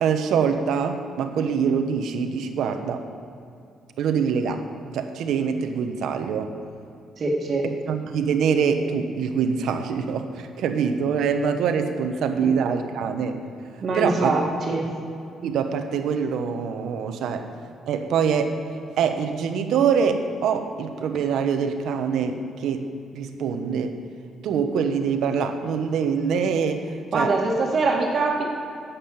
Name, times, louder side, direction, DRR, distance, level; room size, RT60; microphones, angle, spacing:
voice 1, 0.0-3.0 4.0-4.6 4.9-6.5 7.9-13.4 13.9-14.3 15.4-17.5 17.9-18.5 19.0-24.0 24.4-27.3, right 6 dB, 80° right, 7 dB, 1.0 m, -24 dB
voice 2, 7.2-7.6 12.4-12.5 13.8-14.9 27.1-28.4, right 3 dB, 50° right, -1 dB, 2.0 m, -23 dB
9.4 x 8.5 x 8.7 m, 2.5 s
cardioid pair, 90°, 0 cm